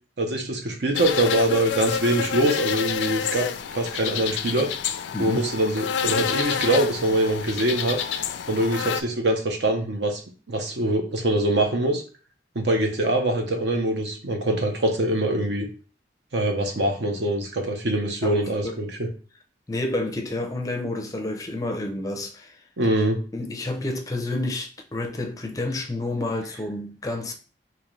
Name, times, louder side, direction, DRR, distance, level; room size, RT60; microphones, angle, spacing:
voice 1, 0.2-3.5 3.7-4.7 5.2-8.0 8.5-10.2 10.5-12.0 12.5-15.7 16.3-19.1 22.8-23.2, right 1 dB, 70° right, 0.8 m, -23 dB
sound 1, 0.9-9.0, left 7 dB, 80° left, 0.3 m, -28 dB
voice 2, 18.2-18.8 19.7-22.6 23.3-27.3, left 2 dB, 20° left, 0.4 m, -29 dB
3.7 x 2.9 x 3.1 m
head